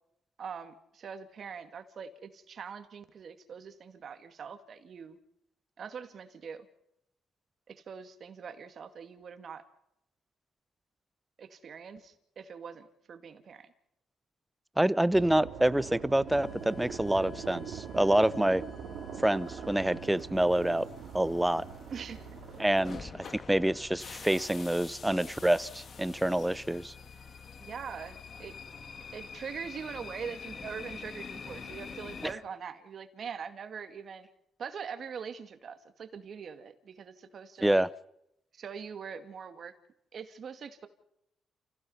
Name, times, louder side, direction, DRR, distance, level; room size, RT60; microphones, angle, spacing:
voice 1, 0.4-5.2 5.8-6.7 7.7-9.6 11.4-13.7 21.9-22.4 27.6-28.5 29.1-34.3 34.6-37.9 38.5-39.7 40.1-40.9, right 6 dB, 55° right, 8 dB, 2.3 m, -43 dB
voice 2, 14.8-18.6 19.2-20.9 21.1-21.6 22.6-26.9 37.6-37.9, right 1 dB, 5° right, 18 dB, 0.7 m, -27 dB
sound 1, 15.1-23.1, right 8 dB, 70° right, 2.9 m, -43 dB
sound 2, 16.3-32.3, left 5 dB, 50° left, 2.2 m, -47 dB
29.5 x 16.0 x 5.7 m, 0.78 s
cardioid pair, 90°, 0 cm